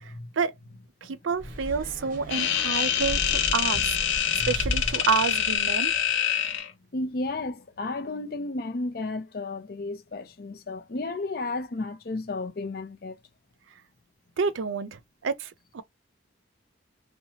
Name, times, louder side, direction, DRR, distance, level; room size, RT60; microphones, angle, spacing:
voice 1, 0.0-0.5 1.0-3.9 4.5-5.9 14.4-15.8, right 5 dB, 90° right, 0.5 m, -29 dB
sound 1, 1.4-6.2, equal, 45° right, 0.9 m, -36 dB
sound 2, 2.3-6.7, left 9 dB, 90° left, 0.7 m, -25 dB
voice 2, 6.9-13.2, left 2 dB, 50° left, 0.5 m, -33 dB
2.8 x 2.2 x 2.8 m
head